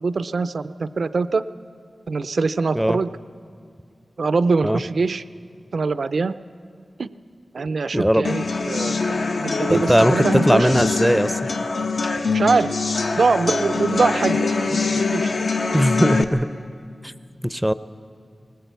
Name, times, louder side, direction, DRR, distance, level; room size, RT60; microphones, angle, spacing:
voice 1, 0.0-1.4 2.1-3.1 4.2-5.2 5.7-6.3 7.0-7.1 7.5-9.2 9.4-10.7 12.3-12.7 13.2-15.5, right 4 dB, 70° right, 13 dB, 0.5 m, -23 dB
voice 2, 7.9-8.3 9.7-10.1 10.5-11.4 15.7-16.5 17.0-17.1 17.4-17.7, equal, 5° right, 14 dB, 0.5 m, -19 dB
sound 1, 8.2-16.2, left 4 dB, 75° left, 1.0 m, -23 dB
19.5 x 19.5 x 8.1 m, 2.3 s
wide cardioid pair, 85°, 0 cm